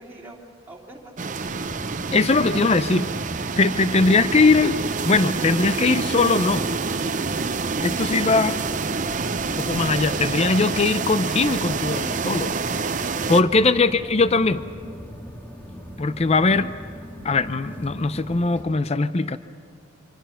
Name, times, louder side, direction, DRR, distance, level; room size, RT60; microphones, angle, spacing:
voice 1, 0.0-1.6 2.5-3.0, right 2 dB, 10° right, -2 dB, 2.8 m, -44 dB
sound 1, 1.2-13.4, right 4 dB, 35° right, 0.7 m, -27 dB
sound 2, 1.5-18.6, equal, 10° left, 2.2 m, -39 dB
voice 2, 2.1-3.1 3.6-4.8 5.0-6.7 7.8-8.6 9.6-12.6 13.3-14.7 16.0-16.7 17.2-19.4, left 3 dB, 30° left, 13 dB, 0.5 m, -20 dB
26.0 x 25.0 x 5.7 m, 2.2 s
head